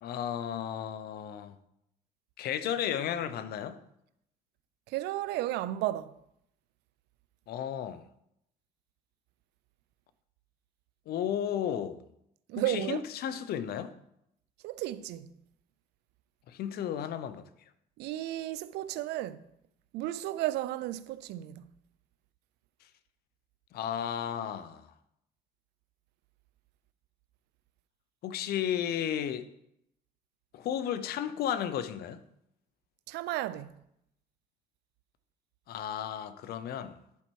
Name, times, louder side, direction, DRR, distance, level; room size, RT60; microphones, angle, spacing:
voice 1, 0.0-1.6 2.4-3.8 7.5-8.0 11.1-12.0 12.6-13.9 16.5-17.5 23.7-24.9 28.2-29.5 30.5-32.2 35.7-37.0, left 9 dB, 65° left, 0.6 m, -33 dB
voice 2, 4.9-6.1 12.5-13.0 14.6-15.3 18.0-19.4 19.9-21.6 33.1-33.7, right 14 dB, 85° right, 0.4 m, -33 dB
10.5 x 4.4 x 4.5 m
cardioid pair, 110°, 17 cm